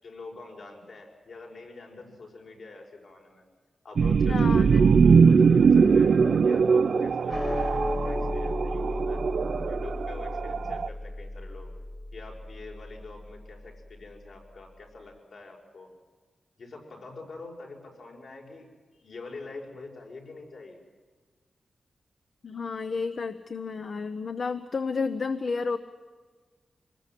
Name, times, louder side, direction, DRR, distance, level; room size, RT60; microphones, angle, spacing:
voice 1, 0.0-3.4 3.8-9.3 9.7-11.7 12.1-15.9 16.6-20.8, left 3 dB, 65° left, 1 dB, 5.7 m, -45 dB
sound 1, 4.0-10.9, right 5 dB, 60° right, 0.6 m, -21 dB
voice 2, 4.3-4.8 22.4-25.8, left 4 dB, 45° left, 10 dB, 0.8 m, -31 dB
sound 2, 7.3-13.8, left 1 dB, 25° left, 2.0 m, -34 dB
25.5 x 20.5 x 7.6 m, 1.4 s
wide cardioid pair, 170°, 0 cm